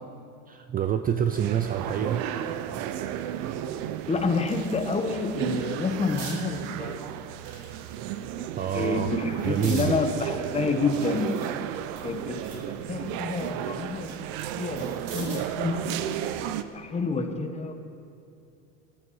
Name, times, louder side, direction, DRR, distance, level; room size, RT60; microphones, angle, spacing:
voice 1, 0.5-2.2 8.6-9.1 9.4-10.0, right 9 dB, 25° right, 9 dB, 0.4 m, -27 dB
sound 1, 1.3-16.6, right 11 dB, 60° right, 0.8 m, -33 dB
voice 2, 4.1-7.1 8.7-11.4 12.0-16.0 16.4-17.7, left 4 dB, 20° left, 6 dB, 1.3 m, -29 dB
sound 2, 4.1-5.1 5.5-6.4 7.3-8.2 8.8-9.9 10.4-12.7 13.1-15.6 16.9-17.1, right 4 dB, 80° right, 3.9 m, -45 dB
18.5 x 12.5 x 4.8 m, 2.6 s
supercardioid pair, 120°, 36 cm